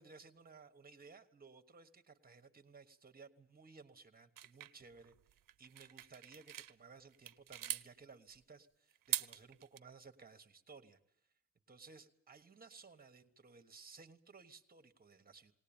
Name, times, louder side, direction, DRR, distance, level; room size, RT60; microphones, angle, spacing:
voice 1, 0.0-5.1 5.6-11.0 11.7-15.5, right 4 dB, 30° right, 8 dB, 1.4 m, -58 dB
sound 1, 4.4-6.7 7.1-7.9 8.9-9.8, right 11 dB, 90° right, 0.8 m, -42 dB
19.5 x 18.5 x 8.8 m, 0.72 s
wide cardioid pair, 155°, 32 cm